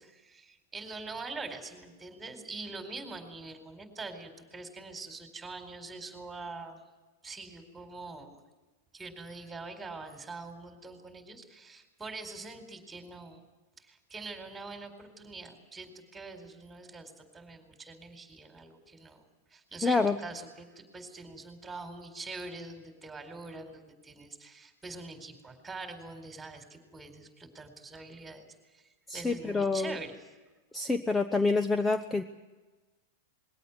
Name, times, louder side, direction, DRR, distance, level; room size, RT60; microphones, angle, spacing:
voice 1, 0.0-6.8 7.2-8.4 8.9-13.4 13.8-19.2 19.5-30.2, right 3 dB, 10° right, 5 dB, 4.4 m, -44 dB
voice 2, 19.8-20.2 29.1-30.0 30.7-32.2, left 3 dB, 10° left, 10 dB, 0.9 m, -27 dB
21.5 x 17.0 x 9.7 m, 1.2 s
hypercardioid pair, 100°, 0 cm